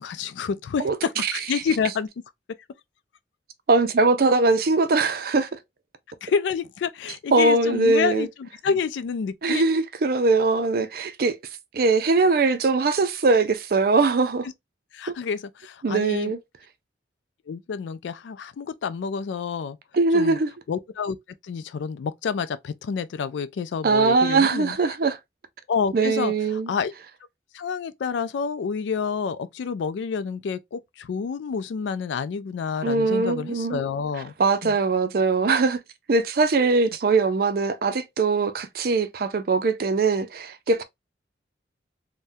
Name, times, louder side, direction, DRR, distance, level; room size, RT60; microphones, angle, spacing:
voice 1, 0.0-2.1 6.2-9.8 14.9-16.3 17.5-19.8 20.1-20.4 20.7-21.2 21.4-24.8 25.7-26.3 26.7-26.9 27.5-34.3 34.6-34.8, left 6 dB, 85° left, 0.3 m, -28 dB
voice 2, 3.7-5.5 7.3-8.3 9.4-11.4 11.7-14.5 15.8-16.4 19.9-20.5 23.8-25.2 25.9-26.7 32.8-33.8 34.4-35.8 36.1-40.8, right 3 dB, 55° right, 0.4 m, -21 dB
3.5 x 2.1 x 2.6 m
head